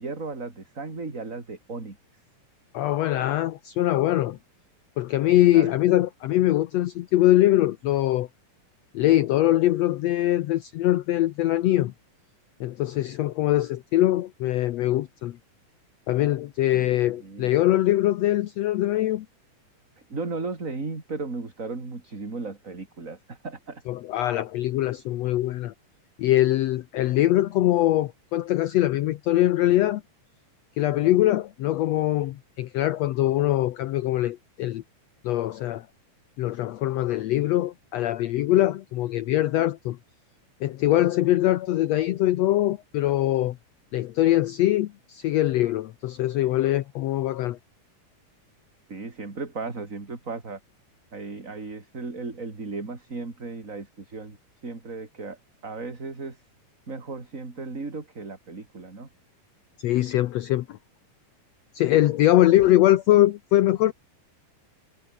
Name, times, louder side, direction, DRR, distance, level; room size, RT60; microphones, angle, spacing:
voice 1, 0.0-2.0 5.5-5.7 16.7-17.5 20.1-23.8 48.9-50.6 51.1-54.4 54.6-56.4 56.9-59.1 62.3-62.5, right 3 dB, 25° right, 3.7 m, -35 dB
voice 2, 2.7-4.4 5.0-8.3 8.9-11.9 12.6-15.4 16.1-19.3 23.9-25.7 26.2-30.0 30.8-34.8 35.2-35.9 36.4-40.0 40.6-43.6 43.9-47.6 59.8-60.8 61.7-63.9, left 14 dB, 70° left, 1.6 m, -22 dB
omnidirectional pair, 3.8 m